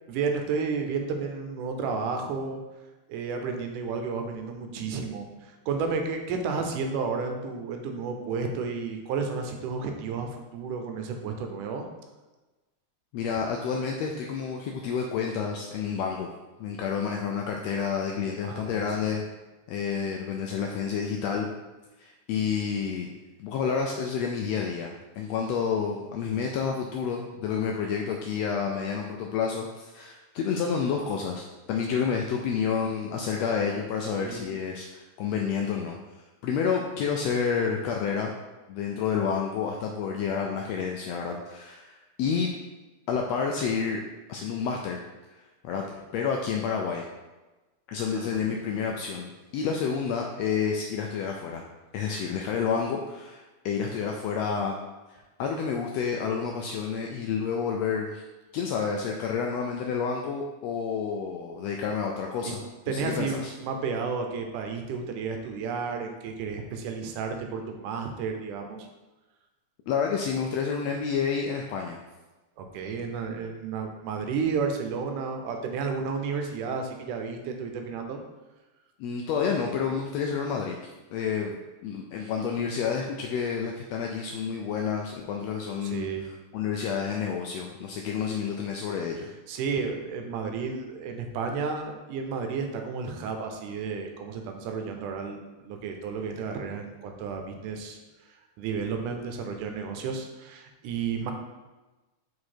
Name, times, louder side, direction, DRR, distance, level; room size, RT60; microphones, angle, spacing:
voice 1, 0.1-2.6 3.1-11.9 18.5-19.2 31.9-32.0 34.1-34.4 45.9-46.0 48.2-48.6 62.5-62.6 62.9-68.9 72.6-78.2 85.8-86.3 89.5-101.3, right 5 dB, 90° right, 4 dB, 2.3 m, -32 dB
voice 2, 13.1-16.3 16.6-19.2 19.7-21.5 22.0-23.1 23.4-36.0 36.4-38.3 38.7-42.5 43.1-44.0 44.3-45.0 45.6-45.8 46.1-47.1 47.9-51.6 51.9-54.8 55.1-58.2 58.5-62.6 62.9-63.5 69.9-72.0 79.0-80.8 81.1-89.3, left 6 dB, 90° left, 1 dB, 1.4 m, -29 dB
5.2 x 4.8 x 4.3 m, 1.1 s
omnidirectional pair, 3.5 m